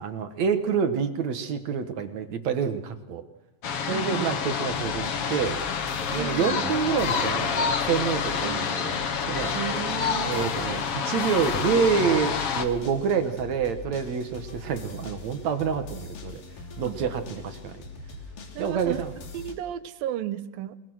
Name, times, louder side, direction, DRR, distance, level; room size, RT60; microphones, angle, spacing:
voice 1, 0.0-3.2 3.9-5.6 6.1-8.9 9.3-9.5 10.2-16.4 16.8-17.8 18.6-19.1, right 6 dB, 60° right, 8 dB, 2.5 m, -27 dB
sound 1, 3.6-12.6, left 6 dB, 50° left, 2.1 m, -28 dB
voice 2, 3.9-4.3 6.2-6.7 8.4-8.7 9.5-10.6 16.8-17.0 18.5-19.0 19.3-20.8, right 12 dB, 90° right, 12 dB, 2.8 m, -34 dB
sound 2, 4.7-19.5, left 4 dB, 70° left, 4.4 m, -42 dB
28.0 x 20.5 x 6.3 m, 0.91 s
omnidirectional pair, 4.0 m